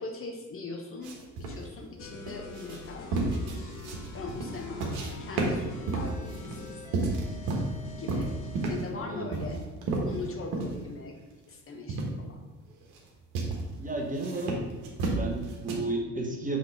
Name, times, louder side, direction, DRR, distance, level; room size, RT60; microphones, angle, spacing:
voice 1, 0.0-3.7 4.1-7.1 8.0-8.3 8.7-9.6 10.0-11.2 11.5-12.4, left 3 dB, 30° left, 1 dB, 0.9 m, -41 dB
sound 1, 1.0-5.1 5.4-7.8 8.1-8.9 9.3-10.8 11.2-11.3 11.9-12.1 12.7-13.0 13.4-13.6 14.1-15.7, right 3 dB, 50° right, 1.4 m, -31 dB
sound 2, 2.0-8.9, left 3 dB, 60° left, 1.0 m, -44 dB
voice 2, 8.9-9.3 13.8-14.6 15.1-16.6, right 2 dB, 15° right, 0 dB, 1.0 m, -32 dB
5.9 x 3.7 x 4.9 m, 1.2 s
figure-of-eight pair, 60°, 47 cm